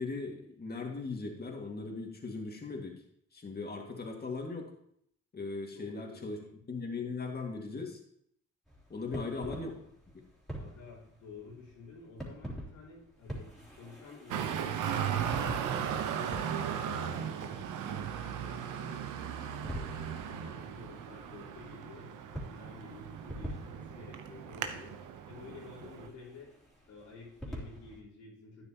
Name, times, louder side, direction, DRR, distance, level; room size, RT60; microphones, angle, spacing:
voice 1, 0.0-2.9 3.3-4.7 5.3-6.4 6.7-8.0 8.9-9.7 10.1-10.2, left 3 dB, 30° left, 1 dB, 2.1 m, -38 dB
voice 2, 5.7-6.5 9.0-9.7 10.6-19.0 19.6-25.0 25.3-26.5 26.9-28.6, left 4 dB, 85° left, -6 dB, 4.2 m, -51 dB
sound 1, 8.7-28.0, right 1 dB, ahead, 3.2 m, -47 dB
Traffic noise roadway noise, 14.3-26.1, right 8 dB, 90° right, 0.9 m, -37 dB
11.5 x 9.4 x 3.0 m, 0.70 s
cardioid pair, 90°, 30 cm